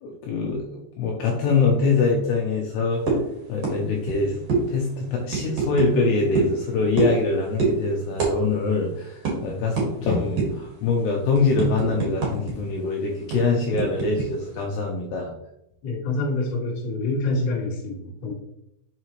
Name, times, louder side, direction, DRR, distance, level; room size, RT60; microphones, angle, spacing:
voice 1, 0.0-3.0 3.5-4.4 4.7-15.3, left 4 dB, 85° left, 0 dB, 2.4 m, -24 dB
sound 1, 3.1-3.3 3.6-4.2 4.5-4.6 5.3-5.9 6.3-6.5 7.0-7.2 7.6-7.8 8.2-8.3 8.6-8.8 9.2-9.3 9.8-9.9 10.4-10.6 11.0-12.5 12.8-12.9 13.3-14.3, right 5 dB, 55° right, 1.8 m, -24 dB
voice 2, 15.8-18.3, left 2 dB, 60° left, -6 dB, 1.2 m, -26 dB
6.0 x 5.7 x 3.1 m, 0.82 s
omnidirectional pair, 5.5 m